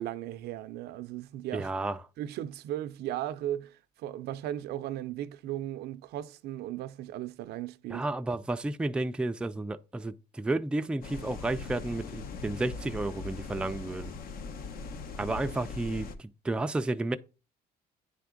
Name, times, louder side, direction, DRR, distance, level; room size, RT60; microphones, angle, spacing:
voice 1, 0.0-1.7 2.2-8.1, right 12 dB, 75° right, 0.5 m, -36 dB
voice 2, 1.5-2.0 7.9-14.1 15.2-17.2, right 2 dB, 5° right, 0.3 m, -32 dB
sound 1, 11.0-16.1, left 4 dB, 60° left, 0.8 m, -40 dB
9.3 x 3.5 x 3.7 m
cardioid pair, 110°, 17 cm